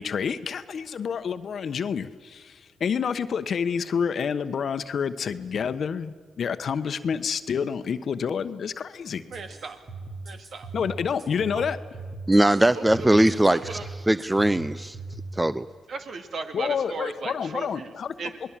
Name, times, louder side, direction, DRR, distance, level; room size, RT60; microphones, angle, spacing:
voice 1, 0.0-9.2 10.7-11.8 16.5-18.2, left 6 dB, 60° left, 11 dB, 1.1 m, -28 dB
sound 1, 9.3-15.3, right 3 dB, 50° right, 4.0 m, -39 dB
voice 2, 9.3-9.8 10.2-10.7 11.5-11.6 12.8-12.9 13.5-13.9 15.9-17.9 18.2-18.4, right 4 dB, 65° right, 6 dB, 2.1 m, -36 dB
voice 3, 12.3-13.8 14.1-15.0 15.3-15.7, right 1 dB, 15° right, 15 dB, 0.6 m, -20 dB
28.0 x 20.0 x 7.5 m, 1.5 s
supercardioid pair, 60°, 0 cm